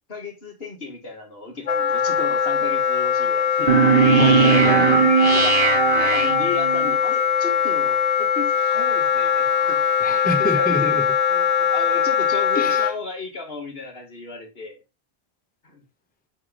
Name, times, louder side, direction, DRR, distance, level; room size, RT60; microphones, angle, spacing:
voice 1, 0.1-3.7 5.2-10.9 11.3-14.7 15.6-15.8, left 3 dB, 65° left, 2.3 m, -34 dB
Wind instrument woodwind instrument, 1.7-12.9, left 8 dB, 40° left, 0.8 m, -21 dB
sound 1, 3.7-7.0, right 6 dB, 60° right, 1.0 m, -18 dB
voice 2, 4.2-5.4 10.0-11.0 12.5-12.9, left 2 dB, 10° left, 0.7 m, -27 dB
8.3 x 3.8 x 5.1 m
omnidirectional pair, 1.1 m